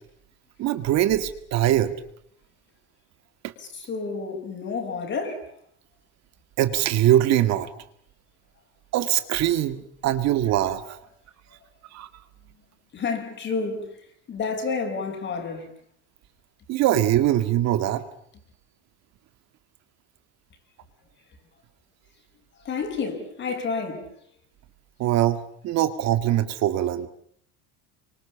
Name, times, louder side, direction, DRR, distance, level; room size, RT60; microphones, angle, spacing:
voice 1, 0.6-1.9 3.4-3.5 6.6-7.7 8.9-11.0 11.9-12.1 16.7-18.0 25.0-27.1, right 13 dB, 50° right, 2.1 m, -22 dB
voice 2, 3.6-5.5 12.9-13.9 14.3-15.7 22.6-24.1, left 4 dB, 35° left, 5.9 m, -30 dB
28.5 x 25.0 x 7.1 m
cardioid pair, 145°, 34 cm